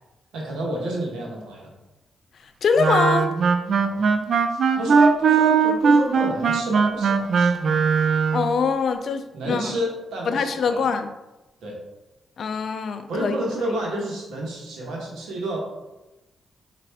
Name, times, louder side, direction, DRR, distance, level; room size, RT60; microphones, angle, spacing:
voice 1, 0.3-1.7 3.8-4.0 4.5-7.5 9.3-10.8 11.6-11.8 13.1-15.6, right 1 dB, 85° right, -2 dB, 1.0 m, -29 dB
voice 2, 2.6-3.3 8.3-9.7 10.3-11.1 12.4-13.3, left 5 dB, 70° left, 9 dB, 0.3 m, -23 dB
Wind instrument woodwind instrument, 2.8-8.5, right 5 dB, 65° right, 0.3 m, -19 dB
4.2 x 2.4 x 3.4 m, 1.0 s
cardioid pair, 60°, 0 cm